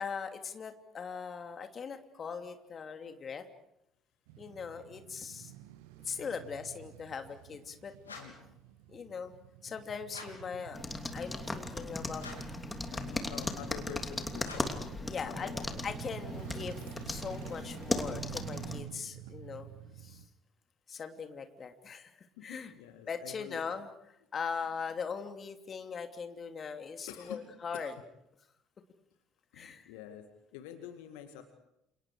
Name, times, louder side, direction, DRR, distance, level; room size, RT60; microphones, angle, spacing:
voice 1, 0.0-3.4 4.4-5.5 6.0-7.9 8.9-9.3 9.6-10.8 11.1-12.2 15.1-15.5 15.8-16.8 17.1-19.7 20.0-20.2 20.9-22.7 23.1-27.9 29.5-29.9, left 6 dB, 35° left, 6 dB, 2.8 m, -40 dB
Male speech man speaking / Motorcycle / Idling, 4.3-20.3, right 12 dB, 65° right, 1.2 m, -48 dB
sound 1, 8.0-8.5 10.1-10.5 12.2-12.7 14.4-14.9, left 4 dB, 85° left, 3.7 m, -48 dB
voice 2, 8.1-8.4 12.9-14.7 15.1-15.8 22.4-23.7 27.1-27.5 27.7-28.0 29.5-31.4, left 10 dB, 65° left, 7 dB, 2.0 m, -47 dB
sound 2, 10.7-18.8, left 2 dB, 15° left, 3.0 m, -38 dB
30.0 x 29.0 x 5.0 m, 0.81 s
figure-of-eight pair, 55°, 0 cm